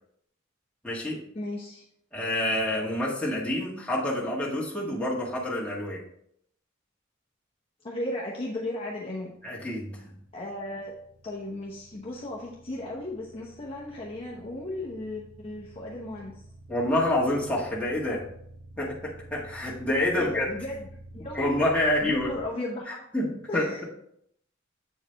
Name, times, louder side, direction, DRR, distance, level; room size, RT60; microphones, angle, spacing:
voice 1, 0.8-1.2 2.1-6.0 9.4-10.1 16.7-18.2 18.8-20.5 21.3-22.3 23.1-23.8, left 1 dB, 5° left, -5 dB, 1.6 m, -27 dB
voice 2, 1.3-1.8 7.8-9.3 10.3-11.0 11.2-16.4 20.1-20.9 21.1-21.5 22.0-23.1 23.5-23.8, left 1 dB, 30° left, -4 dB, 0.8 m, -35 dB
sound 1, 9.1-22.4, right 2 dB, 85° right, 1.0 m, -49 dB
7.9 x 4.8 x 3.3 m, 0.70 s
head